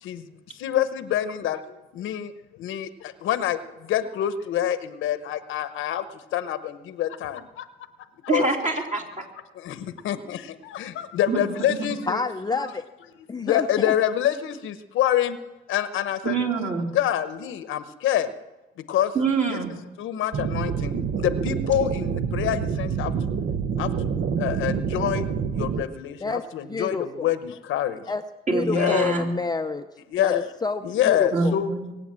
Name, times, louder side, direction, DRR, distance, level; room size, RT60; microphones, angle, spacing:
voice 1, 0.0-7.7 8.2-8.4 9.5-12.2 12.5-12.7 13.4-15.4 15.7-16.4 16.9-18.3 18.9-19.1 19.5-19.6 20.0-23.4 23.8-28.1 28.6-29.1 30.1-30.5 30.8-31.7, left 11 dB, 85° left, 12 dB, 1.0 m, -27 dB
voice 2, 8.3-9.2 11.3-11.4 16.2-16.9 19.1-19.7 28.5-29.3 31.3-32.0, right 3 dB, 40° right, 1 dB, 3.2 m, -25 dB
voice 3, 12.1-12.9 13.3-13.9 26.2-26.4 26.7-27.3 28.1-28.2 28.5-29.9 30.2-31.6, left 4 dB, 20° left, 7 dB, 0.6 m, -29 dB
sound 1, 20.3-25.8, right 6 dB, 60° right, 0.9 m, -27 dB
23.0 x 8.4 x 7.5 m, 1.1 s
cardioid pair, 90°, 20 cm